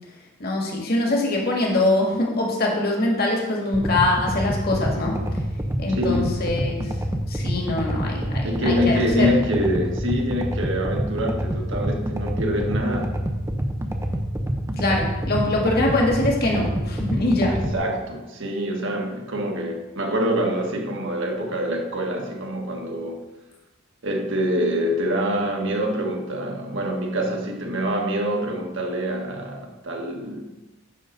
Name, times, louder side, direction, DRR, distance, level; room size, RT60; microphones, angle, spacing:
voice 1, 0.4-5.2 5.8-6.9 7.3-9.3 14.8-17.6, left 2 dB, 50° left, -1 dB, 1.9 m, -23 dB
sound 1, 3.7-17.7, equal, 15° right, 0.6 m, -27 dB
voice 2, 5.9-6.3 8.4-13.2 17.5-23.2 24.0-30.4, equal, 60° right, 1 dB, 1.5 m, -25 dB
10.0 x 3.9 x 6.5 m, 1.1 s
head